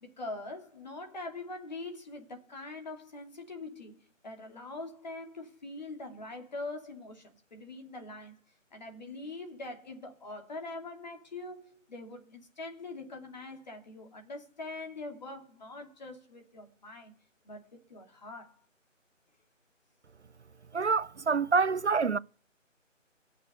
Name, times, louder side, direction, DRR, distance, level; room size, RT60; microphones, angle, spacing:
voice 1, 0.0-4.0 4.2-8.4 8.7-17.2 17.4-18.6, left 2 dB, 35° left, 2.7 m, -43 dB
voice 2, 20.7-22.2, right 5 dB, 60° right, 0.6 m, -26 dB
17.0 x 6.7 x 6.7 m
figure-of-eight pair, 160°, 39 cm